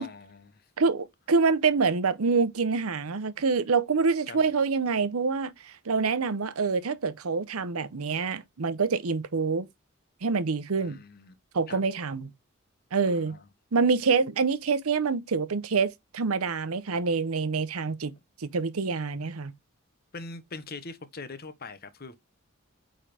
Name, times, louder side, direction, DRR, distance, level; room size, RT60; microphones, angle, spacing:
voice 1, 0.0-0.6 4.3-4.5 10.8-11.4 11.7-11.8 13.1-13.5 20.1-22.2, left 3 dB, 45° left, 1.0 m, -42 dB
voice 2, 0.8-9.7 10.2-11.0 11.5-12.3 12.9-13.3 13.7-18.1 18.4-19.5, right 4 dB, 90° right, 0.7 m, -26 dB
8.8 x 3.8 x 3.4 m
head